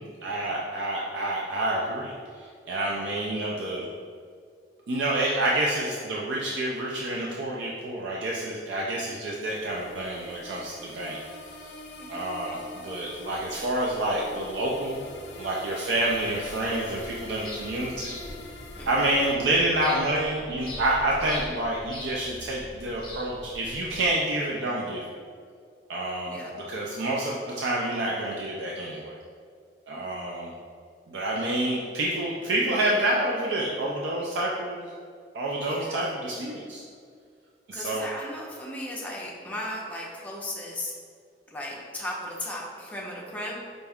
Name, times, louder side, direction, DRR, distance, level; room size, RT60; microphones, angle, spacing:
voice 1, 0.2-3.8 4.9-11.2 12.1-15.0 15.4-18.1 18.8-25.0 25.9-29.1 29.9-30.5 31.1-34.9 35.3-36.8 37.7-38.1, right 1 dB, 90° right, -3 dB, 0.4 m, -28 dB
sound 1, 9.5-19.4, left 3 dB, 65° left, 0.4 m, -44 dB
voice 2, 12.0-12.4 18.7-18.9 26.3-26.5 35.6-36.1 37.7-40.9 41.5-43.6, left 1 dB, 10° left, -3 dB, 0.6 m, -36 dB
sound 2, 16.0-24.1, left 1 dB, 25° left, 0.9 m, -43 dB
5.1 x 2.3 x 3.5 m, 2.2 s
head